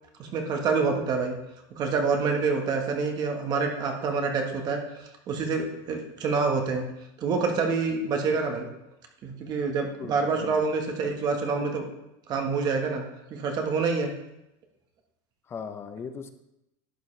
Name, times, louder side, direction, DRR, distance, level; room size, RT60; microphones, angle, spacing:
voice 1, 0.2-1.3 1.8-4.8 5.3-6.9 7.2-8.7 9.2-11.9 12.3-13.0 13.3-14.1, right 4 dB, 35° right, 3 dB, 1.4 m, -27 dB
voice 2, 10.0-10.6 15.5-16.3, left 6 dB, 20° left, 9 dB, 0.7 m, -38 dB
11.5 x 8.1 x 3.3 m, 0.90 s
supercardioid pair, 150°, 11 cm